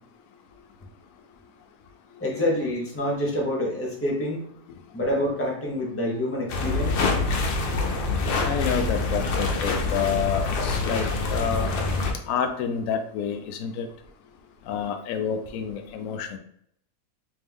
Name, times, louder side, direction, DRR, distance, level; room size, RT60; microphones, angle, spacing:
voice 1, 2.2-4.4 4.9-7.0, left 1 dB, 10° left, -2 dB, 0.7 m, -27 dB
sound 1, 6.5-12.1, left 3 dB, 85° left, 1.3 m, -25 dB
voice 2, 8.4-11.8 12.3-13.9 14.7-16.4, left 7 dB, 65° left, 6 dB, 0.9 m, -28 dB
3.3 x 3.2 x 3.5 m, 0.67 s
omnidirectional pair, 1.7 m